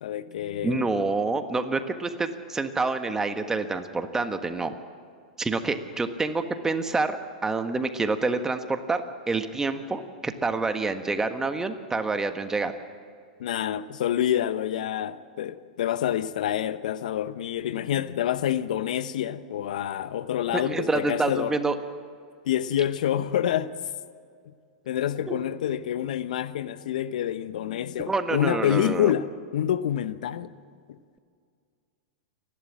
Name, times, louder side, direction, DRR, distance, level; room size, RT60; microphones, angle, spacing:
voice 1, 0.0-0.9 13.4-21.6 22.4-23.7 24.9-30.5 30.9-31.0, left 11 dB, 70° left, 0.9 m, -27 dB
voice 2, 0.6-4.7 5.4-7.2 7.4-9.0 9.3-12.7 20.5-21.7 25.3-25.5 28.1-29.1, right 3 dB, 10° right, 1.5 m, -27 dB
29.0 x 12.0 x 7.5 m
hypercardioid pair, 105°, 4 cm